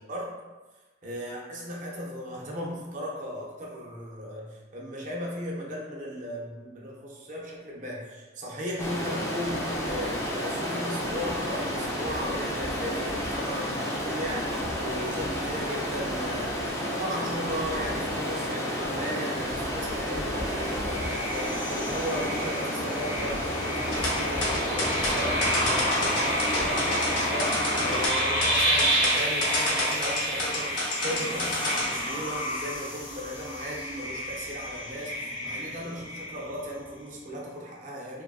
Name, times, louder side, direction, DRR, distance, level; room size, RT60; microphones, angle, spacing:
voice 1, 1.0-38.2, equal, 45° right, -3 dB, 0.5 m, -36 dB
Stream, 8.8-28.1, equal, 15° left, 0.4 m, -31 dB
sound 1, 20.4-36.7, equal, 45° left, 0.8 m, -30 dB
sound 2, 23.9-31.9, left 1 dB, 80° left, 0.7 m, -29 dB
2.6 x 2.4 x 2.3 m, 1.2 s
head